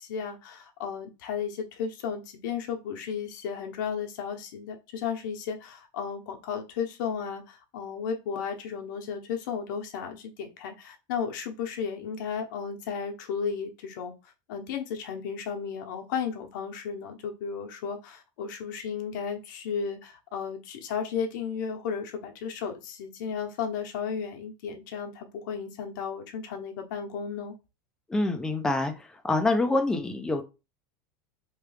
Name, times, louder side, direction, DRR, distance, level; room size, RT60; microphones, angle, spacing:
voice 1, 0.0-14.1 14.5-27.5, left 6 dB, 75° left, 4 dB, 0.8 m, -34 dB
voice 2, 28.1-30.4, left 2 dB, 5° left, 6 dB, 0.3 m, -26 dB
3.1 x 2.3 x 3.2 m, 0.28 s
supercardioid pair, 170°, 10 cm